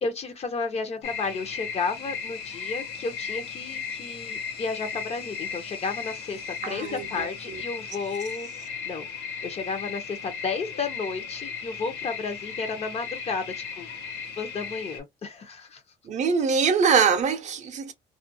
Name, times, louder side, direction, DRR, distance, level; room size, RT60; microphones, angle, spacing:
voice 1, 0.0-9.1 9.4-13.9 14.4-15.8, left 4 dB, 40° left, 0.6 m, -32 dB
sound 1, 1.0-15.0, left 6 dB, 85° left, 0.8 m, -36 dB
voice 2, 6.6-7.6 16.0-17.9, right 6 dB, 45° right, 0.5 m, -24 dB
2.4 x 2.2 x 2.6 m
cardioid pair, 110°, 17 cm